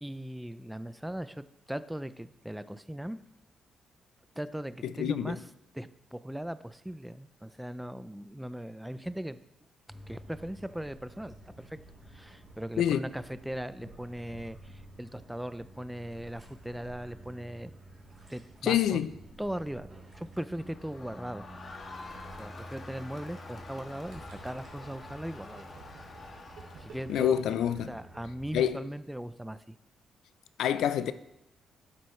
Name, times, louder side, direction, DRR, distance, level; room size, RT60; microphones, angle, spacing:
voice 1, 0.0-3.2 4.4-5.4 5.7-9.4 10.1-11.8 12.1-17.8 18.3-19.0 19.4-21.5 22.4-25.7 25.9-26.1 26.8-27.3 27.9-29.8, right 1 dB, 5° right, 0.4 m, -39 dB
voice 2, 5.0-5.3 12.8-13.0 18.6-19.1 27.1-27.9 28.5-28.8 30.6-31.1, left 10 dB, 85° left, 0.5 m, -26 dB
sound 1, 9.9-28.7, right 1 dB, 20° right, 3.0 m, -51 dB
Crowd, 20.6-27.4, left 3 dB, 40° left, 1.7 m, -48 dB
Gurgling, 24.1-28.8, right 4 dB, 90° right, 2.5 m, -52 dB
12.0 x 10.0 x 3.2 m
cardioid pair, 130°, 0 cm